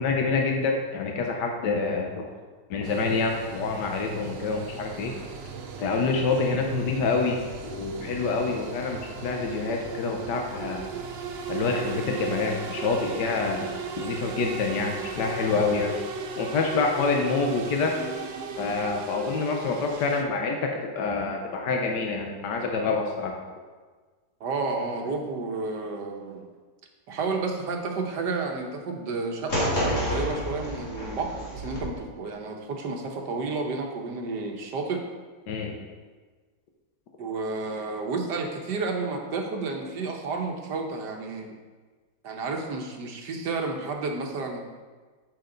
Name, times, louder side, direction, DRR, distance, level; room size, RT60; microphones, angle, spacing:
voice 1, 0.0-2.3 2.7-5.1 5.8-7.4 7.7-10.8 11.5-15.9 16.4-18.0 18.6-23.3 35.5-35.7, left 4 dB, 85° left, 2 dB, 1.5 m, -27 dB
sound 1, 2.8-20.2, right 5 dB, 60° right, 0.7 m, -37 dB
voice 2, 24.4-26.4 27.1-35.0 37.2-41.5 42.2-44.6, right 3 dB, 85° right, 2 dB, 1.7 m, -31 dB
sound 2, 29.5-31.8, equal, 45° left, 2.5 m, -29 dB
8.8 x 7.8 x 3.9 m, 1.4 s
omnidirectional pair, 1.8 m